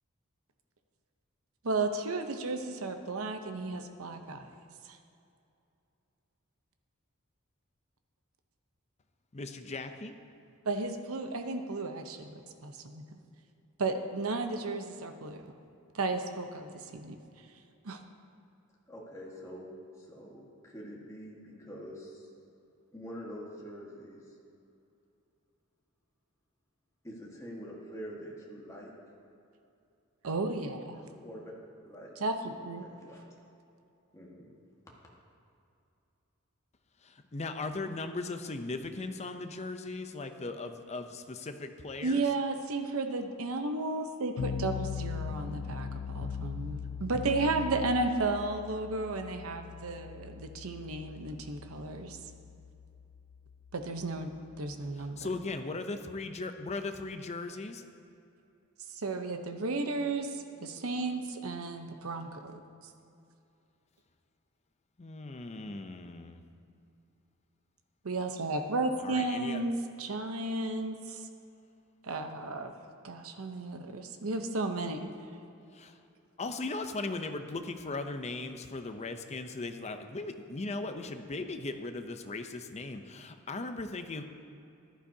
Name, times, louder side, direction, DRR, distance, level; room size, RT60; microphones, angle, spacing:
voice 1, 1.6-4.5 4.9-5.0 10.6-13.0 13.8-15.4 15.9-17.2 17.8-18.0 30.2-31.0 32.2-32.9 42.0-52.2 53.7-54.3 54.6-55.4 58.9-62.6 68.0-71.2 72.0-72.7 73.0-75.1, right 3 dB, 75° right, 6 dB, 0.8 m, -33 dB
voice 2, 9.3-10.2 37.0-42.2 55.2-57.8 65.0-66.4 69.0-69.6 75.7-75.9 76.4-84.2, left 3 dB, 30° left, 7 dB, 0.6 m, -38 dB
voice 3, 18.9-19.7 20.0-22.3 22.9-24.2 27.0-28.9 30.9-31.5 31.8-32.2 32.8-33.2 34.1-34.5, equal, 15° left, -4 dB, 1.5 m, -45 dB
sound 1, 44.4-55.5, left 7 dB, 80° left, 0.4 m, -40 dB
14.5 x 11.5 x 2.8 m, 2.7 s
head